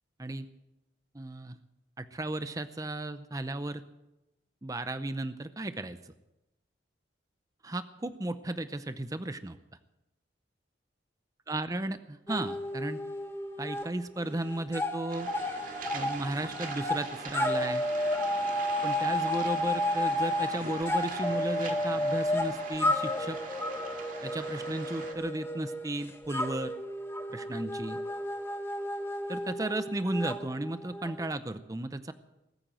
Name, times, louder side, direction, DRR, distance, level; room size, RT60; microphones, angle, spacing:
voice 1, 1.1-1.6 2.0-3.8 4.6-6.1 7.6-9.6 11.5-12.0 12.3-13.0 13.6-15.3 15.9-17.9 18.8-23.4 24.2-26.7 27.3-28.0 29.3-32.1, right 2 dB, 20° right, 11 dB, 0.6 m, -34 dB
sound 1, 12.3-13.9 14.2-31.3, left 1 dB, 15° left, 1.3 m, -32 dB
Waves surf, 15.1-25.1, right 4 dB, 45° right, 2.1 m, -42 dB
20.0 x 9.0 x 7.6 m, 0.93 s
head